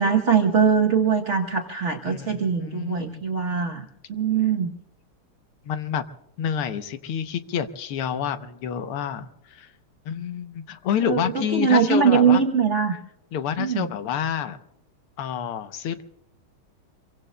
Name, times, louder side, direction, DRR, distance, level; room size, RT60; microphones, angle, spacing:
voice 1, 0.0-4.7 11.0-13.0 13.6-13.9, right 6 dB, 50° right, 2 dB, 0.9 m, -22 dB
voice 2, 2.1-3.2 5.7-6.0 6.4-9.7 10.1-12.4 13.3-14.6 15.2-16.0, left 8 dB, 90° left, 10 dB, 1.8 m, -28 dB
27.5 x 23.5 x 2.2 m, 0.86 s
omnidirectional pair, 2.4 m